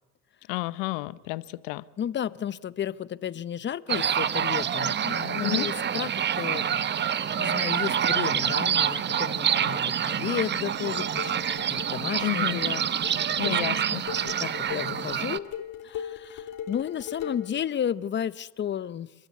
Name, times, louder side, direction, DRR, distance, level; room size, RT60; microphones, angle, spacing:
voice 1, 0.5-1.8 5.4-5.7 12.2-12.6 13.4-14.0, left 21 dB, 80° left, 18 dB, 0.9 m, -30 dB
voice 2, 2.0-13.6 13.9-15.6 15.8-19.1, left 9 dB, 30° left, 18 dB, 0.7 m, -33 dB
sound 1, 3.9-15.4, right 8 dB, 30° right, 0.8 m, -27 dB
sound 2, 10.6-17.6, left 9 dB, 55° left, 3.2 m, -39 dB
29.5 x 13.0 x 8.2 m, 1.2 s
supercardioid pair, 105°, 37 cm